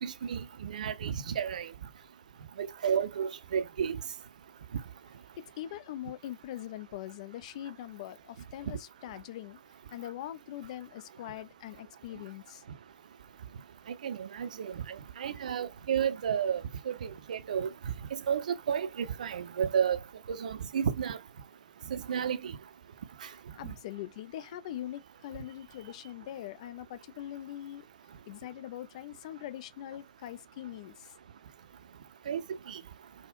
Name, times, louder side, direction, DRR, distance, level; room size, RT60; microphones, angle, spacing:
voice 1, 0.0-1.7 2.6-4.0 14.0-17.7 18.1-20.0 20.3-21.2 21.9-22.5 32.3-32.4 32.7-32.8, right 8 dB, 60° right, 0.5 m, -32 dB
voice 2, 5.4-9.6 9.9-12.6 23.6-27.9 28.3-31.1, left 12 dB, 50° left, 0.5 m, -42 dB
3.5 x 2.1 x 2.5 m
figure-of-eight pair, 105°, 5 cm